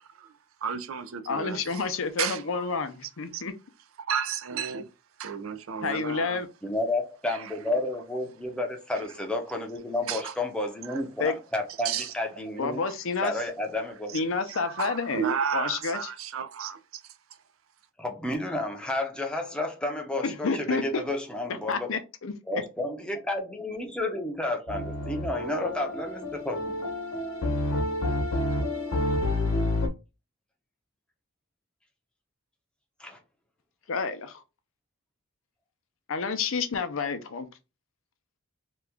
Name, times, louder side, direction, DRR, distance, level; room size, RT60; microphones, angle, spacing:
voice 1, 0.6-1.9 2.2-2.7 3.3-3.4 4.0-4.9 5.2-6.4 7.3-7.5 10.1-10.3 10.9-11.0 11.8-12.1 12.8-12.9 14.5-17.0, right 7 dB, 70° right, 0.4 m, -32 dB
voice 2, 1.3-3.5 5.8-6.5 11.2-11.3 12.6-13.3 14.1-16.0 20.2-21.0 21.7-22.3 33.9-34.4 36.1-37.5, left 4 dB, 65° left, 0.5 m, -29 dB
voice 3, 6.6-12.8 13.2-14.2 18.0-21.9 22.5-26.9 33.0-33.2, left 2 dB, 5° left, 0.6 m, -31 dB
sound 1, 24.7-29.9, left 1 dB, 85° left, 0.9 m, -29 dB
2.9 x 2.3 x 3.4 m
head